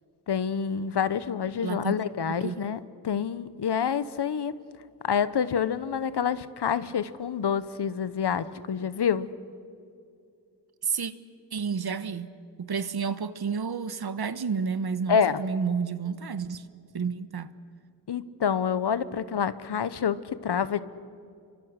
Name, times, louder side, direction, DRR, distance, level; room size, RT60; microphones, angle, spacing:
voice 1, 0.3-4.5 5.0-9.3 15.1-15.4 18.1-20.8, left 7 dB, 70° left, 1.1 m, -27 dB
voice 2, 1.6-1.9 2.2-2.6 10.8-11.1 11.5-12.3 12.6-16.6 16.9-17.5, right 6 dB, 60° right, 1.2 m, -30 dB
29.0 x 24.5 x 6.6 m
cardioid pair, 65°, 42 cm